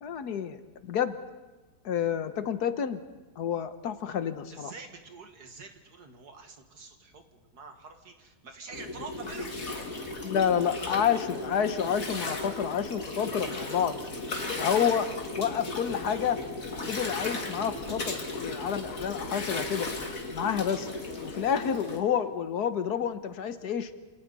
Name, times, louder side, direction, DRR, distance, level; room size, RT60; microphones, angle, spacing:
voice 1, 0.0-1.1 1.8-3.0 3.4-4.7 10.2-14.0 14.6-15.1 15.4-16.4 16.7-19.9 20.3-20.9 21.2-23.9, left 8 dB, 75° left, 10 dB, 1.5 m, -29 dB
voice 2, 4.5-9.6, right 4 dB, 70° right, 5 dB, 2.4 m, -46 dB
Gurgling, 8.7-22.0, left 2 dB, 55° left, 2.6 m, -36 dB
28.0 x 27.5 x 4.1 m, 1.2 s
omnidirectional pair, 1.7 m